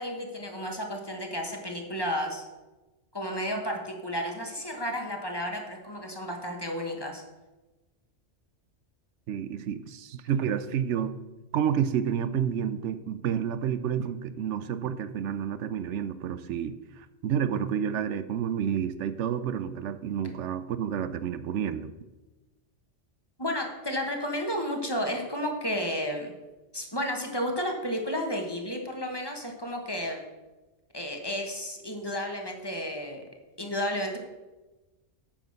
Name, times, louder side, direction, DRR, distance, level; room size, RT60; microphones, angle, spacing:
voice 1, 0.0-2.4 3.1-7.2 23.4-26.3 26.7-30.3 30.9-33.2 33.6-34.2, equal, 20° left, 2 dB, 1.3 m, -32 dB
voice 2, 9.3-11.2 11.5-21.9, right 8 dB, 80° right, 13 dB, 0.9 m, -30 dB
8.7 x 6.2 x 6.6 m, 1.1 s
omnidirectional pair, 1.2 m